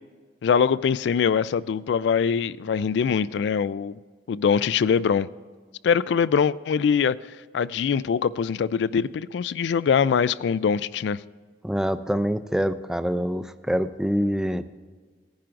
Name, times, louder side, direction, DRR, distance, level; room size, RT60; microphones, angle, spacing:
voice 1, 0.4-4.0 4.3-5.3 5.8-7.2 7.5-11.2, left 6 dB, 75° left, 0.3 m, -23 dB
voice 2, 11.6-14.6, equal, 5° right, 0.4 m, -25 dB
19.0 x 10.5 x 2.5 m
head